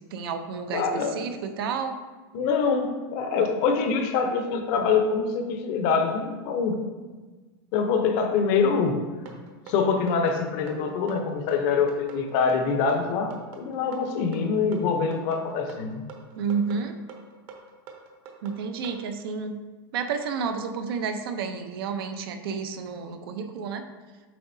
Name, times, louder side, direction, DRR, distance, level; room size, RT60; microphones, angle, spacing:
voice 1, 0.0-1.9 16.4-17.0 18.4-19.6 19.9-23.8, right 5 dB, 80° right, 6 dB, 0.7 m, -31 dB
voice 2, 0.7-1.1 2.3-6.8 7.7-9.0 9.7-16.1, left 5 dB, 45° left, 5 dB, 0.7 m, -25 dB
sound 1, 9.3-19.0, right 6 dB, 45° right, 0.8 m, -45 dB
7.6 x 4.8 x 2.7 m, 1.3 s
supercardioid pair, 165°, 12 cm